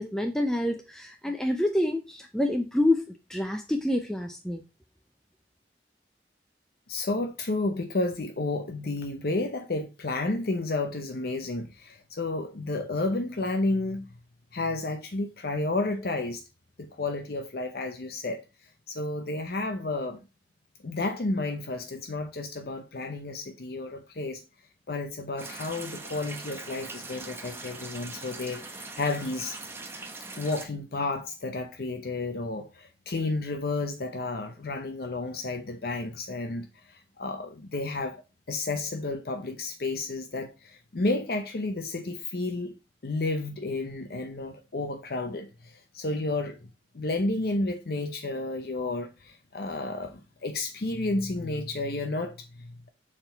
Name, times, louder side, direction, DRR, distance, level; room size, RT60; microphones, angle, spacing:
voice 1, 0.0-3.0 3.3-4.6, left 1 dB, 5° left, 0.5 m, -27 dB
voice 2, 6.9-14.1 14.5-16.4 16.8-18.4 18.9-20.2 20.8-24.4 24.9-29.6 30.4-38.2 38.5-42.7 43.0-46.6 46.9-52.9, left 2 dB, 55° left, 0.7 m, -31 dB
sound 1, 25.4-30.7, right 3 dB, 15° right, 0.8 m, -41 dB
6.8 x 3.7 x 4.4 m
head